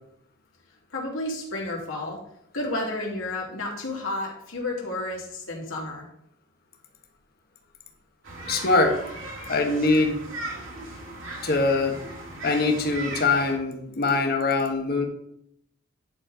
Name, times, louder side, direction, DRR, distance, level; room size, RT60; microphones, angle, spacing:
voice 1, 0.9-2.2 2.5-6.0, left 2 dB, 90° left, -2 dB, 2.9 m, -31 dB
sound 1, 8.2-13.5, right 2 dB, 70° right, 2.6 m, -37 dB
voice 2, 8.5-8.9 9.5-10.2 11.4-11.9 12.4-15.0, left 3 dB, 50° left, 3 dB, 1.5 m, -22 dB
11.0 x 4.3 x 5.0 m, 0.73 s
head